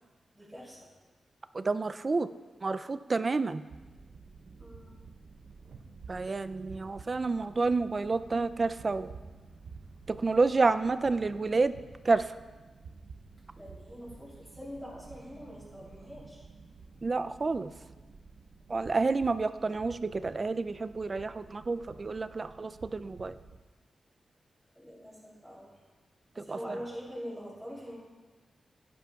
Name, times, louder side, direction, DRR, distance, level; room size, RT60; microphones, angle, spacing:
voice 1, 0.3-0.9 4.6-5.0 13.6-16.4 24.7-25.7 26.3-27.9, equal, 5° left, -8 dB, 3.1 m, -44 dB
voice 2, 1.5-2.3 2.6-3.6 6.1-9.1 10.1-11.7 12.0-12.3 17.0-17.7 18.7-23.3 26.4-26.8, right 3 dB, 40° right, 13 dB, 0.3 m, -29 dB
sound 1, 3.7-23.6, right 4 dB, 75° right, 0.7 m, -51 dB
10.5 x 10.0 x 2.3 m, 1.3 s
cardioid pair, 85°, 0 cm